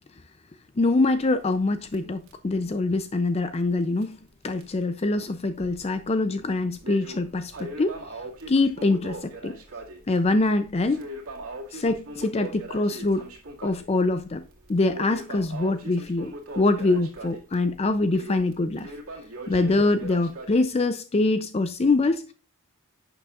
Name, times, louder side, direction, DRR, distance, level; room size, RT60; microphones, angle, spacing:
voice 1, 0.8-4.2 4.4-8.0 8.5-9.6 10.1-11.1 11.7-13.3 13.6-14.4 14.7-18.9 19.5-22.3, left 2 dB, 30° left, 0.4 m, -24 dB
Crackle, 1.1-4.0 4.6-4.7 5.4-6.0 6.4-20.6, right 1 dB, 70° right, 2.1 m, -41 dB
11.0 x 6.8 x 2.4 m
head